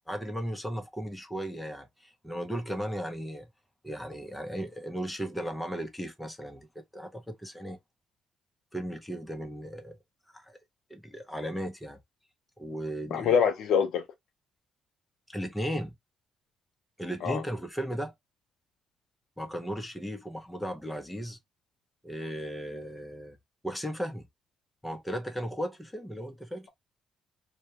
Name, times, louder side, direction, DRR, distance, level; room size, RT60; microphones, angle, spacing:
voice 1, 0.1-3.5 3.8-6.7 6.9-7.8 8.7-10.0 10.3-10.6 10.9-12.0 12.6-13.4 15.3-16.0 17.0-18.1 19.4-21.4 22.0-23.4 23.6-24.3 24.8-26.7, equal, 5° left, 0.6 m, -36 dB
voice 2, 13.1-14.1 17.2-17.4, left 7 dB, 80° left, 0.6 m, -25 dB
2.2 x 2.2 x 2.8 m
cardioid pair, 90°, 0 cm